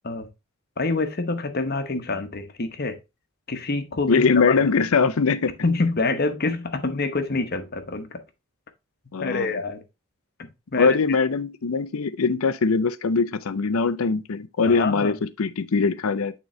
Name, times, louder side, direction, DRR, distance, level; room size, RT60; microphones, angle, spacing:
voice 1, 0.8-3.0 3.5-4.7 5.6-8.2 9.2-9.8 10.4-11.2 14.7-15.2, left 3 dB, 45° left, 0.9 m, -26 dB
voice 2, 4.1-5.5 9.1-9.5 10.8-16.3, left 4 dB, 75° left, 0.5 m, -22 dB
8.9 x 3.9 x 3.1 m
head